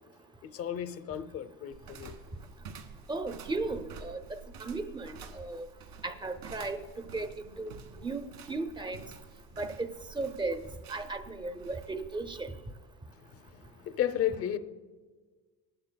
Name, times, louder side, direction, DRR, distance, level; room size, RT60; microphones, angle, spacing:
voice 1, 0.5-2.1 13.2-14.6, left 11 dB, 40° left, 0.6 m, -33 dB
sound 1, 1.7-13.0, right 4 dB, 75° right, 1.6 m, -50 dB
voice 2, 3.1-5.7 6.0-6.8 7.1-7.3 7.6-9.1 9.6-9.7 10.1-12.5, right 3 dB, 15° right, 0.6 m, -36 dB
26.0 x 12.0 x 2.2 m
cardioid pair, 145°, 36 cm